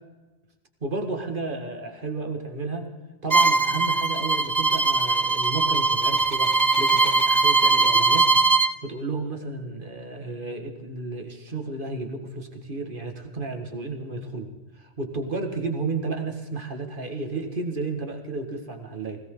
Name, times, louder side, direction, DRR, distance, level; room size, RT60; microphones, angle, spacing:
voice 1, 0.8-2.9 3.2-8.3 8.8-14.5 14.8-19.2, right 3 dB, 40° right, 5 dB, 2.1 m, -32 dB
Bowed string instrument, 3.3-8.7, right 3 dB, 25° right, 0.5 m, -20 dB
20.5 x 17.5 x 3.9 m, 1.1 s
omnidirectional pair, 1.4 m